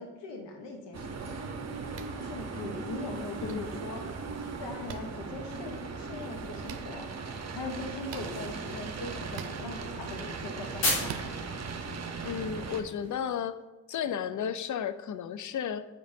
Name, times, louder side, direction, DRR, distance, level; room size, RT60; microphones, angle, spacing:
voice 1, 0.0-1.8 2.2-4.0 4.6-7.1 7.5-11.3, left 3 dB, 75° left, 3 dB, 1.2 m, -41 dB
sound 1, 0.9-12.8, right 4 dB, 35° right, 0.8 m, -38 dB
sound 2, 1.6-13.4, left 2 dB, 90° left, 1.7 m, -41 dB
sound 3, 1.9-2.2 3.4-3.5 4.9-5.0 6.6-6.8 8.1-8.3 9.3-9.5 11.0-11.3, right 9 dB, 80° right, 0.6 m, -41 dB
voice 2, 12.2-13.6 13.9-15.9, left 8 dB, 45° left, 13 dB, 0.5 m, -33 dB
8.0 x 4.9 x 2.7 m, 1.1 s
supercardioid pair, 45°, 43 cm